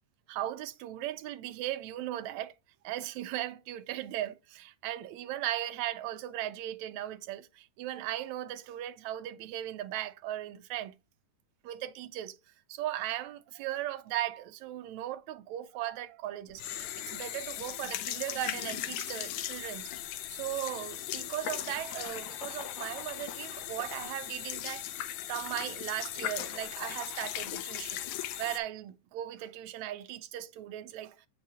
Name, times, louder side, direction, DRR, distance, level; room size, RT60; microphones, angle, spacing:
voice 1, 0.3-2.5 2.8-10.9 11.6-12.4 12.7-19.9 20.3-28.0 28.4-31.3, right 13 dB, 75° right, 1.8 m, -37 dB
sound 1, 16.5-28.6, left 12 dB, 75° left, 2.0 m, -38 dB
7.8 x 5.6 x 2.8 m
omnidirectional pair, 3.8 m